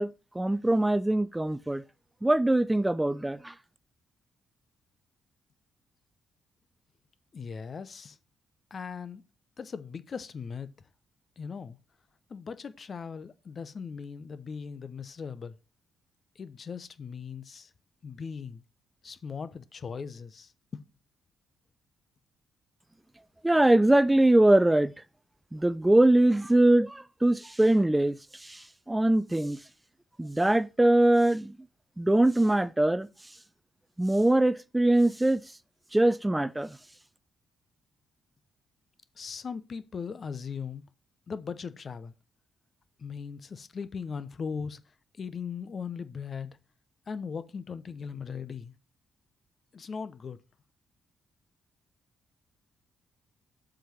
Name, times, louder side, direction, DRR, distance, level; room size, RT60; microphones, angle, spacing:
voice 1, 0.0-1.8 2.2-3.5 23.4-24.9 25.5-29.6 30.2-31.5 32.0-33.1 34.0-35.4 35.9-36.8, right 1 dB, 15° right, 0.6 m, -23 dB
voice 2, 7.3-8.2 8.7-9.2 9.6-10.7 11.4-11.8 12.3-15.6 16.4-17.7 18.0-18.6 19.0-20.8 39.2-40.8 41.3-42.1 43.0-44.8 45.2-46.5 47.1-48.7 49.7-50.4, left 6 dB, 45° left, 0.8 m, -39 dB
7.7 x 5.0 x 5.8 m
hypercardioid pair, 40°, 0 cm